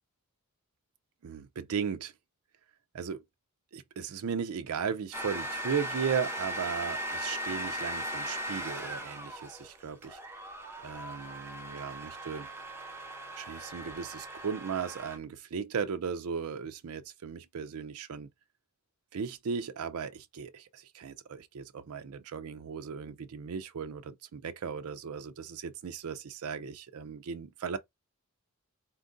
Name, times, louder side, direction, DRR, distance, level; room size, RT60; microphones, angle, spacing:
voice 1, 1.2-2.1 2.9-3.2 3.7-10.2 10.8-12.5 13.4-18.3 19.1-27.8, right 6 dB, 75° right, 0.4 m, -36 dB
sound 1, 5.1-15.2, right 1 dB, 10° right, 0.9 m, -38 dB
4.4 x 2.4 x 3.7 m
head